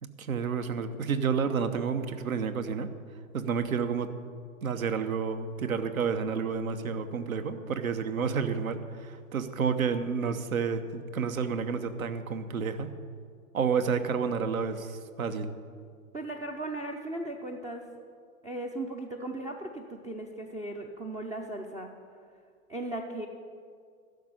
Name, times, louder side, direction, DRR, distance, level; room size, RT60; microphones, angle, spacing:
voice 1, 0.0-2.9 3.3-4.1 4.6-12.9 13.5-15.5, right 6 dB, 70° right, 9 dB, 1.1 m, -30 dB
voice 2, 16.1-17.9 18.4-21.9 22.7-23.3, right 1 dB, 10° right, 2 dB, 0.5 m, -37 dB
12.0 x 6.5 x 9.7 m, 2.1 s
figure-of-eight pair, 105°, 43 cm